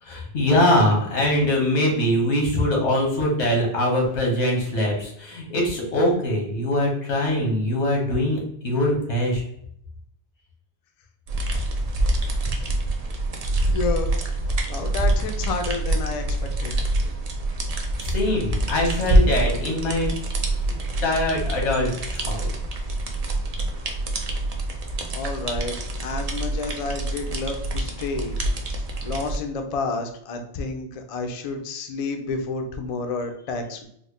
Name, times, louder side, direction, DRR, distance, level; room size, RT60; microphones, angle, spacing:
voice 1, 0.0-9.4 18.0-20.1 20.5-22.5, left 1 dB, 90° left, -1 dB, 1.4 m, -23 dB
sound 1, 11.3-29.4, right 1 dB, 50° right, 0.5 m, -26 dB
voice 2, 13.7-14.1 14.7-16.8 25.1-28.4 29.0-33.9, left 3 dB, 55° left, 5 dB, 0.4 m, -30 dB
4.1 x 2.1 x 3.1 m, 0.70 s
omnidirectional pair, 1.1 m